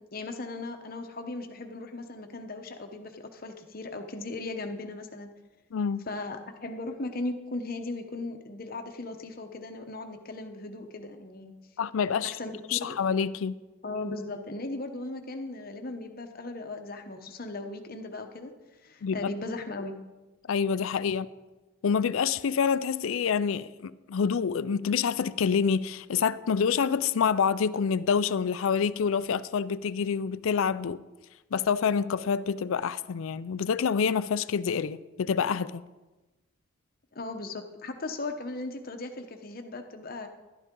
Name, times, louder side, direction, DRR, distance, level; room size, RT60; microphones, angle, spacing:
voice 1, 0.0-5.3 6.1-11.5 12.2-13.0 13.8-18.5 18.8-19.9 37.1-40.3, left 2 dB, 45° left, 0.9 m, -37 dB
voice 2, 5.7-6.1 11.8-12.3 12.7-13.5 19.0-19.2 20.5-21.3 21.8-31.0 31.5-35.8, left 6 dB, 70° left, 0.4 m, -27 dB
12.0 x 11.5 x 3.8 m
head